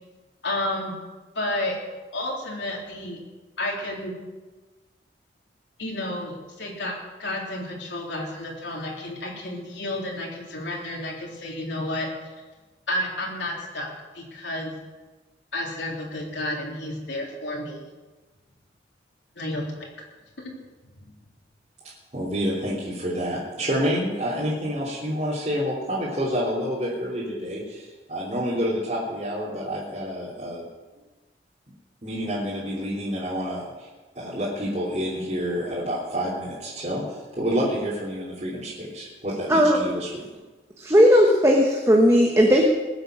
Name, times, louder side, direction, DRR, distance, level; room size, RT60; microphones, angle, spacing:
voice 1, 0.4-0.9 1.3-1.8 2.1-3.2 3.6-4.1 5.8-6.9 7.2-12.1 12.9-14.7 15.5-17.8 19.3-19.9 20.4-20.5 21.0-21.1, left 1 dB, 90° left, -1 dB, 3.5 m, -31 dB
voice 2, 22.1-30.6 32.0-33.9 34.1-40.2, equal, 40° right, -9 dB, 3.2 m, -28 dB
voice 3, 39.5-39.8 40.8-42.6, equal, 15° right, 0 dB, 1.2 m, -16 dB
20.0 x 8.0 x 6.5 m, 1.2 s
head